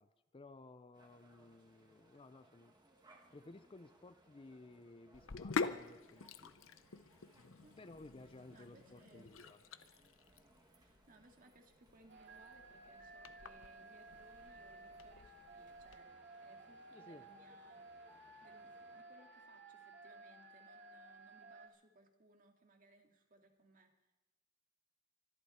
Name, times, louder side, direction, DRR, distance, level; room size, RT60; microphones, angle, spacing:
voice 1, 0.0-2.8 3.3-6.6 7.5-9.6 16.9-17.3, left 2 dB, 25° left, 12 dB, 0.5 m, -57 dB
sound 1, 0.9-19.0, right 1 dB, 20° right, 1.9 m, -69 dB
Sink (filling or washing), 5.1-16.0, left 4 dB, 80° left, 0.8 m, -46 dB
voice 2, 7.6-8.0 8.5-9.4 10.7-17.8 18.4-23.9, right 1 dB, 45° right, 3 dB, 2.1 m, -66 dB
sound 2, 12.1-21.7, right 2 dB, 60° right, 2.4 m, -56 dB
24.5 x 11.5 x 4.3 m, 1.1 s
head